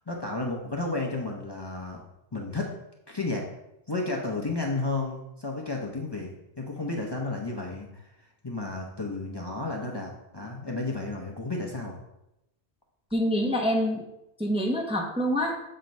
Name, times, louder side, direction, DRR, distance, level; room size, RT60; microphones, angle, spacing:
voice 1, 0.0-2.0 2.3-2.7 3.1-3.5 3.9-6.3 6.6-8.1 8.4-12.0, left 2 dB, 25° left, -1 dB, 0.7 m, -32 dB
voice 2, 13.1-14.0 14.4-15.6, equal, 5° right, 0 dB, 0.7 m, -26 dB
7.6 x 2.9 x 5.2 m, 0.88 s
omnidirectional pair, 1.1 m